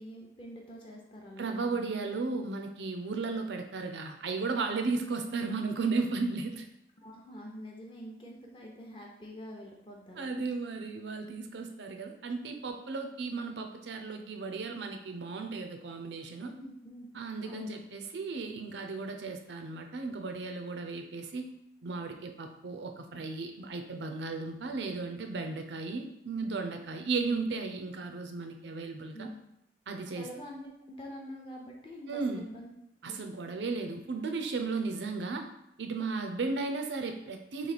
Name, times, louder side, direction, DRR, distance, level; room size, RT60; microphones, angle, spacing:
voice 1, 0.0-1.8 7.0-10.4 16.4-17.1 17.4-17.8 29.1-29.4 30.1-32.7 33.1-33.2, equal, 30° left, -1 dB, 0.5 m, -46 dB
voice 2, 1.4-6.7 10.2-16.5 17.1-21.5 21.8-29.3 29.9-30.3 32.1-32.5 33.0-35.5 35.8-37.7, right 4 dB, 85° right, 5 dB, 0.5 m, -35 dB
3.1 x 2.9 x 4.1 m, 0.80 s
head